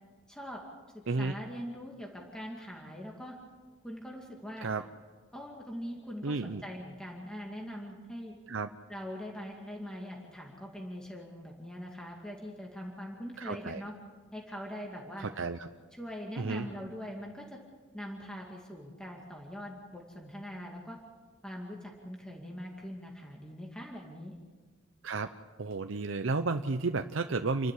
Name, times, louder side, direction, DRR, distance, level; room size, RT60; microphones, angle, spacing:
voice 1, 0.3-0.6 0.9-3.4 3.8-4.7 5.3-8.4 8.9-13.9 14.3-15.3 15.9-17.6 17.9-21.0 21.4-24.3, equal, 5° left, -1 dB, 2.3 m, -42 dB
voice 2, 6.2-6.6 8.5-8.7 13.4-13.8 15.2-15.7 16.4-16.7 25.0-25.3 25.6-27.7, right 3 dB, 80° right, 7 dB, 0.7 m, -32 dB
29.0 x 12.5 x 8.4 m, 1.4 s
head